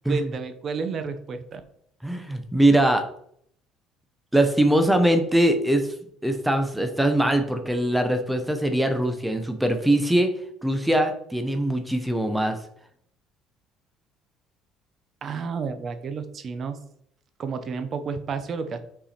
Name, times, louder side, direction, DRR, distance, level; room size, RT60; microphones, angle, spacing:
voice 1, 0.0-1.6 15.2-16.8 17.4-18.8, right 5 dB, 40° right, 10 dB, 0.8 m, -31 dB
voice 2, 2.0-3.1 4.3-5.9 6.2-10.3 10.6-12.6, right 1 dB, 5° right, 7 dB, 0.8 m, -22 dB
5.8 x 4.8 x 4.3 m, 0.67 s
cardioid pair, 125°, 0 cm